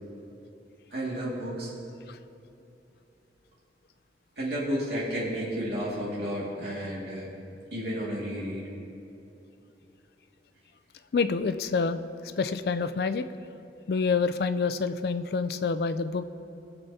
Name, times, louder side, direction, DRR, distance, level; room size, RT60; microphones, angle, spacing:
voice 1, 0.9-1.7 4.4-7.3 7.7-8.7, equal, 70° right, -6 dB, 2.1 m, -32 dB
voice 2, 11.1-12.0 12.4-13.3 13.9-16.2, left 4 dB, 60° left, 11 dB, 0.4 m, -27 dB
20.5 x 7.0 x 2.7 m, 2.9 s
head